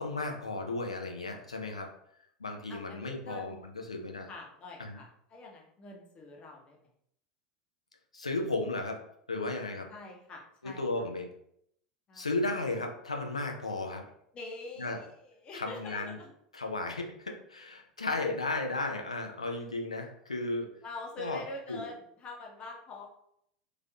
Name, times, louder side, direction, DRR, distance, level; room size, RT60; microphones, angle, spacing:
voice 1, 0.0-1.9 2.4-4.3 4.8-5.0 8.1-9.0 9.3-9.9 10.6-11.3 12.1-14.0 14.8-15.0 15.5-16.2 16.5-20.7 21.2-21.4 21.7-21.8, left 2 dB, 90° left, 3 dB, 0.4 m, -34 dB
voice 2, 2.7-3.6 4.3-6.9 9.9-10.9 12.1-12.3 14.3-16.3 20.8-23.1, left 2 dB, 35° left, 0 dB, 0.8 m, -45 dB
3.2 x 2.5 x 2.3 m, 0.72 s
figure-of-eight pair, 80°, 3 cm